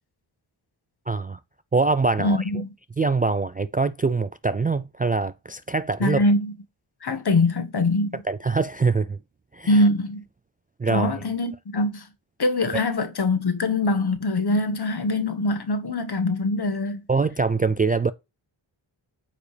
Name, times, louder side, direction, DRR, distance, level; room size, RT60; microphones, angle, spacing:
voice 1, 1.1-1.4 1.7-2.6 3.0-6.2 8.2-9.2 9.5-9.8 10.8-11.1 12.7-12.8 17.1-18.1, right 4 dB, 20° right, 0.3 m, -24 dB
voice 2, 2.2-2.7 6.0-6.5 7.0-8.2 9.7-10.2 10.9-12.0 12.4-17.0, left 2 dB, 50° left, 1.4 m, -23 dB
8.7 x 4.9 x 3.3 m
cardioid pair, 60°, 48 cm